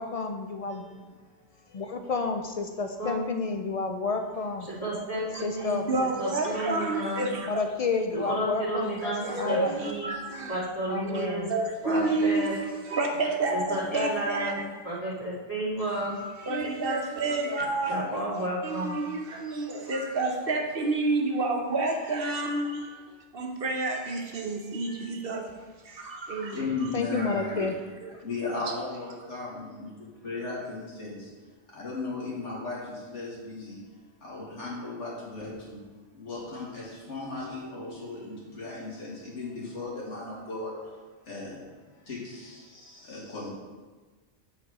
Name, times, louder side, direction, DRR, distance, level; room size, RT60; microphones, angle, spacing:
voice 1, 0.0-1.1 1.7-4.7 5.4-5.9 7.4-9.7 10.9-11.5 26.9-27.8 28.1-28.2, left 4 dB, 60° left, 5 dB, 0.3 m, -30 dB
voice 2, 0.7-1.8 26.5-27.7 28.2-31.3 31.7-33.8 34.2-35.8 36.1-43.5, left 3 dB, 90° left, -6 dB, 2.3 m, -37 dB
voice 3, 4.7-7.2 8.1-10.1 10.5-11.4 11.8-12.5 13.5-14.6 14.8-16.2 17.9-18.9, right 1 dB, 30° left, -6 dB, 2.0 m, -32 dB
voice 4, 5.9-7.5 9.0-10.5 11.0-14.7 15.9-18.0 18.6-23.0 23.3-25.5 25.8-26.6 27.2-27.7 28.0-28.1, right 2 dB, 55° right, 2 dB, 1.2 m, -30 dB
7.7 x 4.4 x 4.8 m, 1.4 s
omnidirectional pair, 1.2 m